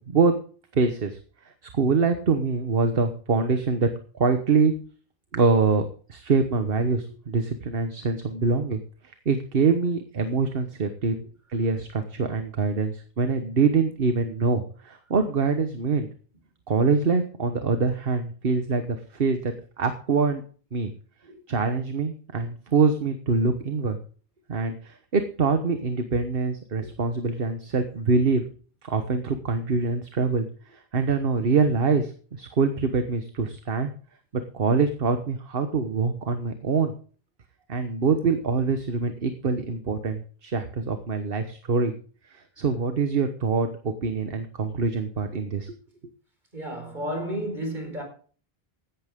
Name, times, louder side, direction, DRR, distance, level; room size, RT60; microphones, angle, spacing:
voice 1, 0.7-1.2 1.8-3.9 4.2-4.7 5.3-5.8 6.1-8.8 9.2-11.2 11.5-16.1 16.7-20.4 20.7-20.9 21.5-24.0 24.5-28.4 28.8-33.9 34.5-36.9 37.7-41.9 42.3-45.8, right 4 dB, 65° right, 1.4 m, -24 dB
voice 2, 46.5-48.0, equal, 50° right, 5.0 m, -32 dB
16.0 x 11.5 x 3.7 m
omnidirectional pair, 1.0 m